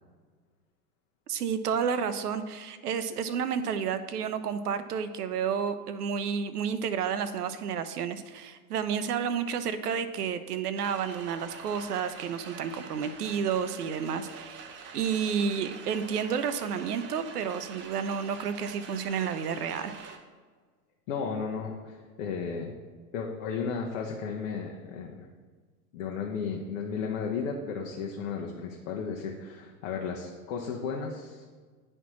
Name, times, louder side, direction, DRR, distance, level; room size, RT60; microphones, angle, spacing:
voice 1, 1.3-19.9, right 7 dB, 75° right, 11 dB, 0.6 m, -31 dB
sound 1, 10.7-20.2, right 6 dB, 25° right, 0.6 m, -45 dB
voice 2, 21.1-22.7 23.1-25.3 25.9-31.4, left 5 dB, 55° left, 0 dB, 0.9 m, -34 dB
9.8 x 4.3 x 3.0 m, 1.5 s
hypercardioid pair, 100°, 47 cm